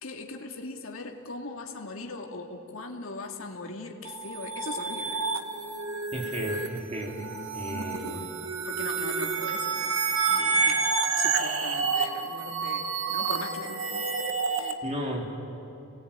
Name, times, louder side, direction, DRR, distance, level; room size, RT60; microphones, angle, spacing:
voice 1, 0.0-5.3 6.5-6.7 8.0-8.3 8.7-10.8 11.2-14.1 14.5-14.8, left 3 dB, 75° left, 1 dB, 2.5 m, -40 dB
sound 1, 4.0-14.7, right 5 dB, 85° right, 1.7 m, -29 dB
voice 2, 6.1-7.2 7.5-8.2 14.8-15.4, equal, 30° right, -1 dB, 3.7 m, -34 dB
28.5 x 20.0 x 9.0 m, 2.9 s
head